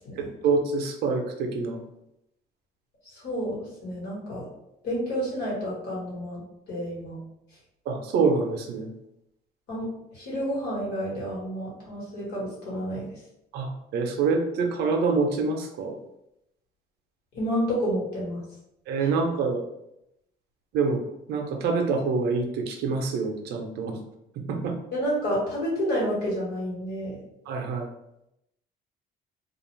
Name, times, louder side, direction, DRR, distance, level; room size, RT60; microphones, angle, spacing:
voice 1, 0.2-1.8 7.9-8.9 13.5-16.0 18.9-19.6 20.7-21.0 21.3-24.0 24.5-24.8 27.5-27.9, right 4 dB, 75° right, 4 dB, 0.6 m, -26 dB
voice 2, 3.0-4.5 4.8-6.4 6.7-7.2 9.7-9.9 10.1-13.1 17.3-18.4 19.0-19.1 24.9-27.2, equal, 80° left, -6 dB, 1.5 m, -30 dB
2.4 x 2.3 x 3.1 m, 0.83 s
cardioid pair, 110°, 17 cm